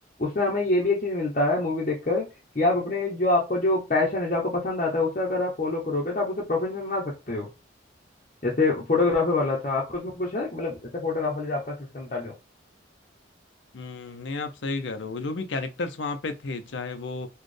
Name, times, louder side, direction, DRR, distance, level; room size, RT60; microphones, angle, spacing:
voice 1, 0.2-2.3 2.5-7.5 8.4-12.3, left 2 dB, 40° left, 0.8 m, -25 dB
voice 2, 13.7-17.3, left 3 dB, 70° left, 0.6 m, -32 dB
4.1 x 2.3 x 3.2 m
head